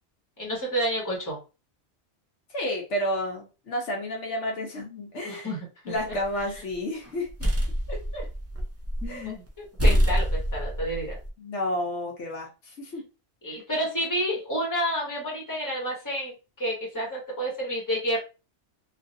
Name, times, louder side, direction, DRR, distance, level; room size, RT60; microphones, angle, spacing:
voice 1, 0.4-1.4 5.2-5.9 8.1-8.2 9.0-11.2 13.4-18.2, equal, 15° left, -3 dB, 1.3 m, -30 dB
voice 2, 2.5-5.5 5.9-7.3 7.9-8.0 9.1-9.3 11.4-13.0, left 1 dB, 75° left, 0 dB, 1.2 m, -31 dB
sound 1, 6.0-6.6 7.0-9.2 9.5-9.6 9.8-11.3, equal, 20° right, 0.4 m, -25 dB
3.1 x 2.6 x 2.6 m, 0.30 s
omnidirectional pair, 1.2 m